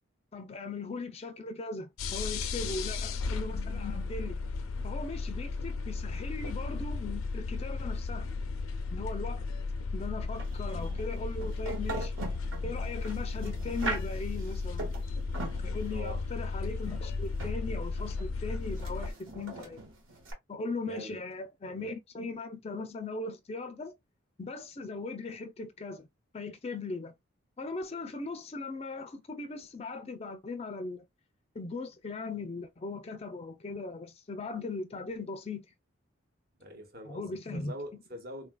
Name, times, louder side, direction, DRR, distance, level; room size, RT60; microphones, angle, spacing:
voice 1, 0.3-4.4 4.8-8.3 8.9-9.4 9.9-12.1 12.6-14.9 15.6-19.8 20.5-23.9 24.4-26.1 26.3-27.1 27.6-31.1 31.5-35.7 37.1-37.7, left 3 dB, 30° left, 0.4 m, -39 dB
sound 1, 2.0-19.1, left 4 dB, 90° left, 0.4 m, -35 dB
voice 2, 2.6-2.9 15.9-16.2 20.9-21.2 21.7-21.9 36.6-38.5, equal, 50° right, 0.9 m, -44 dB
sound 2, 10.3-20.3, right 2 dB, 75° right, 1.3 m, -42 dB
3.6 x 2.4 x 2.2 m
head